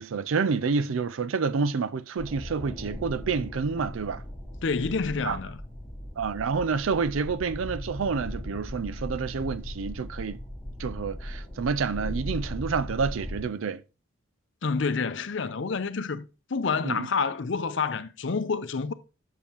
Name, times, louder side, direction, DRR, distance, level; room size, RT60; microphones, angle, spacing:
voice 1, 0.0-4.2 5.2-5.4 6.2-10.4 10.8-13.8 16.8-17.1, right 5 dB, 80° right, 0.5 m, -28 dB
sound 1, 2.2-13.4, equal, 10° left, 1.4 m, -38 dB
voice 2, 4.6-5.6 14.6-18.9, left 4 dB, 60° left, 0.6 m, -28 dB
7.1 x 6.8 x 2.9 m
head